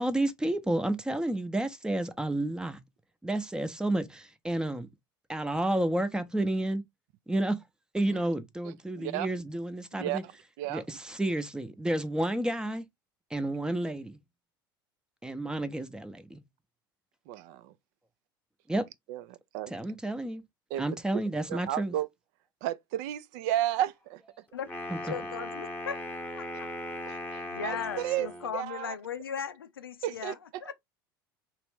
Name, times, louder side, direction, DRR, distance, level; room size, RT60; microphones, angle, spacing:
voice 1, 0.0-2.8 3.2-4.9 5.3-6.8 7.3-7.6 7.9-10.2 10.7-12.8 13.3-14.2 15.2-16.4 18.7-18.9 19.7-20.4 20.8-21.9 24.9-25.0, right 1 dB, 5° right, 0.6 m, -30 dB
voice 2, 8.6-9.3 10.0-10.3 10.6-10.8 17.3-17.7 19.1-19.7 20.7-20.8 21.5-22.1 22.6-24.2 27.1-28.3 28.5-29.0 30.0-30.7, right 13 dB, 55° right, 0.4 m, -33 dB
Wind instrument woodwind instrument, 24.6-28.6, left 1 dB, 15° left, 0.9 m, -38 dB
voice 3, 25.0-26.1 26.4-26.7 27.5-30.7, left 7 dB, 85° left, 0.4 m, -37 dB
3.0 x 2.5 x 3.4 m
figure-of-eight pair, 70°, 12 cm